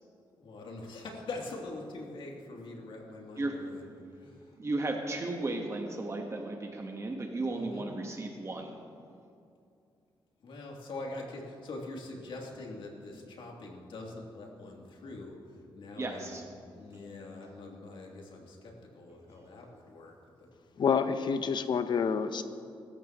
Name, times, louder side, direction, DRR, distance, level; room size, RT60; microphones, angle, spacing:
voice 1, 0.4-3.9 4.2-4.5 7.5-7.8 10.4-15.4 15.7-16.4 16.7-20.1, left 2 dB, 80° left, -1 dB, 3.0 m, -43 dB
voice 2, 3.4-3.7 4.6-8.8 16.0-16.5, right 2 dB, 30° right, 2 dB, 1.4 m, -35 dB
voice 3, 20.8-22.4, left 6 dB, 60° left, 10 dB, 0.9 m, -28 dB
23.5 x 14.0 x 3.1 m, 2.5 s
cardioid pair, 110°, 9 cm